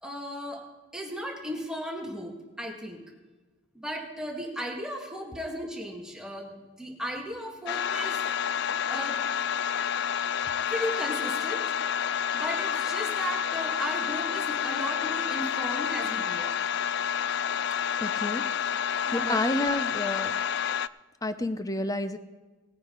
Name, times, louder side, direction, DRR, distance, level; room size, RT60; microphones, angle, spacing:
voice 1, 0.0-0.7 0.9-3.0 3.7-8.2 8.9-9.2 10.7-11.7 12.3-16.6 19.1-19.4, equal, 5° right, -1 dB, 1.9 m, -36 dB
sound 1, 7.7-20.9, left 8 dB, 60° left, 0.3 m, -29 dB
voice 2, 18.0-18.4 19.1-20.3 21.2-22.2, left 1 dB, 20° left, 11 dB, 0.6 m, -29 dB
18.5 x 9.4 x 3.9 m, 1.2 s
head